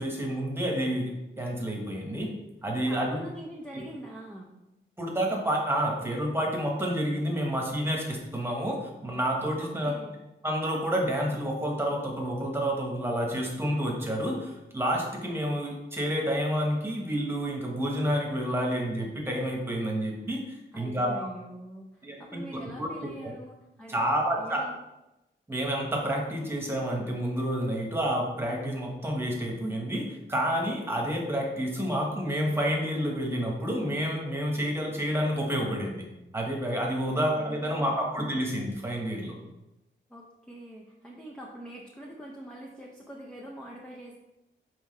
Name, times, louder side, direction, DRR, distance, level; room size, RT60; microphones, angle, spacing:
voice 1, 0.0-2.3 2.6-3.2 3.7-3.8 5.0-9.9 10.4-21.3 22.0-22.4 22.8-23.1 23.9-24.6 25.5-36.1 36.3-39.4, equal, 10° right, -1 dB, 1.2 m, -29 dB
voice 2, 2.8-4.6 9.6-10.2 20.7-24.1 24.4-24.8 37.0-37.3 37.6-38.0 40.1-44.2, right 1 dB, 5° left, -1 dB, 0.6 m, -44 dB
6.2 x 4.7 x 3.2 m, 0.96 s
wide cardioid pair, 140°, 21 cm